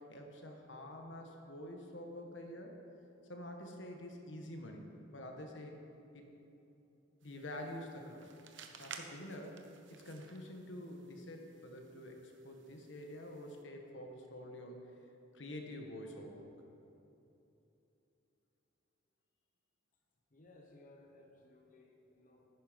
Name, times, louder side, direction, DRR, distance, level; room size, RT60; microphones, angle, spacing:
voice 1, 0.0-2.8 3.3-5.8 6.1-6.2 7.2-8.3 8.8-9.6 9.9-14.9 15.3-16.5, left 1 dB, 75° left, 3 dB, 1.3 m, -47 dB
sound 1, 7.2-13.6, right 6 dB, 75° right, 0.9 m, -55 dB
voice 2, 20.3-22.5, left 2 dB, 45° left, 0 dB, 1.1 m, -60 dB
11.5 x 9.5 x 5.2 m, 2.9 s
head